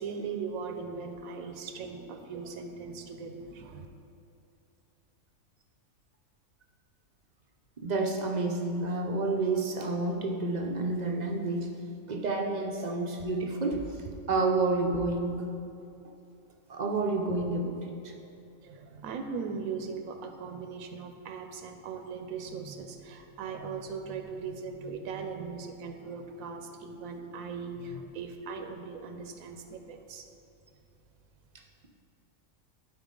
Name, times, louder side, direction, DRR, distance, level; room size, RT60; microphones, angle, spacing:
voice 1, 0.0-3.9 18.6-30.3, right 5 dB, 85° right, 5 dB, 1.1 m, -39 dB
voice 2, 7.8-11.7 12.1-15.4 16.7-18.1, right 3 dB, 55° right, 1 dB, 0.5 m, -29 dB
12.0 x 4.3 x 3.7 m, 2.7 s
omnidirectional pair, 1.4 m